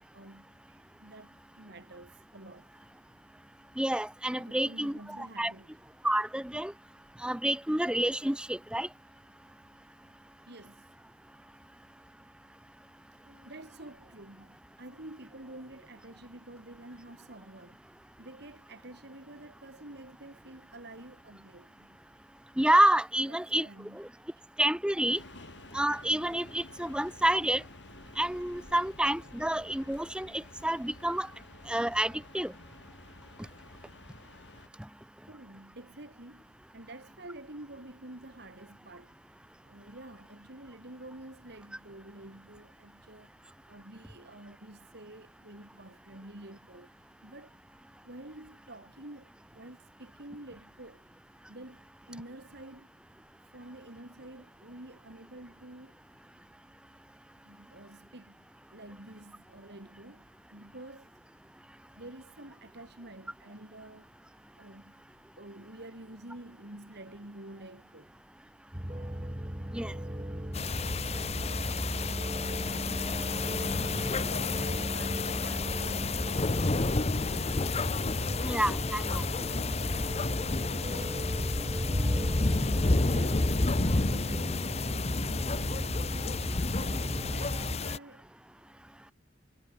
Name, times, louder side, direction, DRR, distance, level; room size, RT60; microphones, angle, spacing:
voice 1, 0.1-2.7 4.4-5.8 10.5-10.9 13.2-17.8 18.2-22.0 23.2-24.2 25.4-25.5 35.3-39.2 39.6-47.6 48.0-51.0 51.5-53.0 53.5-56.0 57.4-58.4 58.7-61.1 61.9-64.1 64.6-64.9 65.4-68.1 70.2-70.3 74.1-76.3 83.1-83.5 83.9-84.7 87.2-88.3, right 1 dB, 60° right, 3.4 m, -49 dB
voice 2, 3.8-5.5 6.0-6.7 7.2-8.9 22.6-23.7 23.9-24.1 24.6-25.2 25.7-27.6 28.2-31.3 31.7-32.5 69.7-69.9 78.4-79.2, right 1 dB, 5° right, 0.9 m, -28 dB
sound 1, 25.1-34.7, left 2 dB, 70° left, 4.8 m, -51 dB
sound 2, 68.7-87.8, equal, 20° right, 2.6 m, -38 dB
sound 3, 70.5-88.0, left 3 dB, 35° left, 0.9 m, -30 dB
head